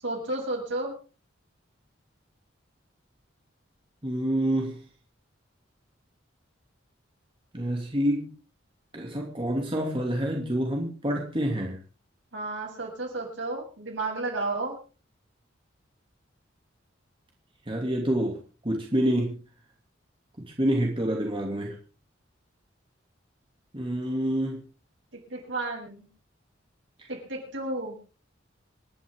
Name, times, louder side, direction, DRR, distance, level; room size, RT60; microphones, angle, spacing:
voice 1, 0.0-1.0 12.3-14.8 25.3-26.1 27.1-28.0, right 2 dB, 70° right, -1 dB, 7.7 m, -32 dB
voice 2, 4.0-4.8 7.5-8.3 8.9-11.8 17.7-18.4 18.6-19.4 20.6-21.7 23.7-24.6, right 1 dB, 25° right, 0 dB, 2.7 m, -27 dB
27.5 x 11.0 x 3.8 m, 0.36 s
head